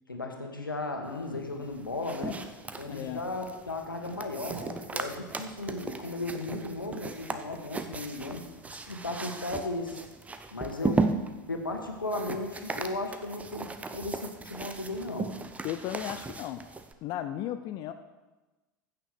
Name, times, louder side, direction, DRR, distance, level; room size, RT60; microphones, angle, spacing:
voice 1, 0.1-2.4 2.8-8.5 8.7-10.1 10.5-11.1 11.5-15.4, left 2 dB, 80° left, 3 dB, 1.9 m, -35 dB
sound 1, 1.6-16.9, right 3 dB, 10° right, 0.9 m, -36 dB
voice 2, 2.9-3.2 10.8-10.9 15.6-16.7 17.0-17.9, left 11 dB, 40° left, 9 dB, 0.6 m, -35 dB
15.0 x 6.7 x 6.5 m, 1.2 s
figure-of-eight pair, 80°, 11 cm